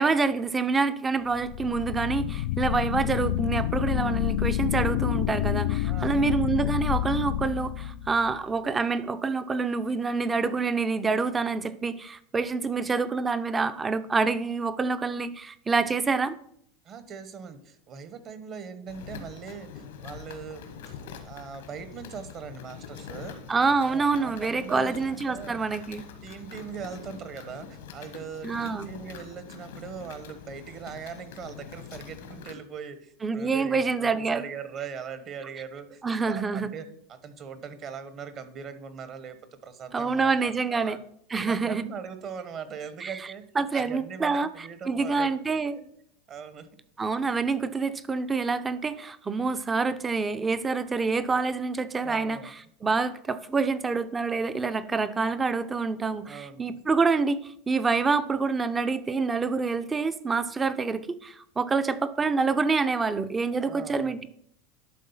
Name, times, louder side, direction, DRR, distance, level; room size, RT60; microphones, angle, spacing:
voice 1, 0.0-16.4 23.5-26.0 28.4-28.9 33.2-34.4 36.0-36.7 39.9-41.0 41.3-41.8 43.0-43.1 43.6-44.5 44.9-45.8 47.0-64.3, right 4 dB, 15° right, 14 dB, 0.5 m, -27 dB
sound 1, 1.3-8.4, left 13 dB, 75° left, 0.3 m, -28 dB
voice 2, 5.8-6.4 16.8-20.9 21.2-23.4 23.8-25.6 26.2-36.0 36.3-39.4 39.6-41.0 41.4-43.4 43.7-45.8 46.3-46.7 52.0-52.5 56.2-56.7 63.6-64.3, right 6 dB, 40° right, 11 dB, 1.0 m, -40 dB
sound 2, 18.9-32.5, left 6 dB, 90° left, 1.4 m, -44 dB
11.0 x 3.7 x 5.5 m, 0.68 s
supercardioid pair, 130°, 0 cm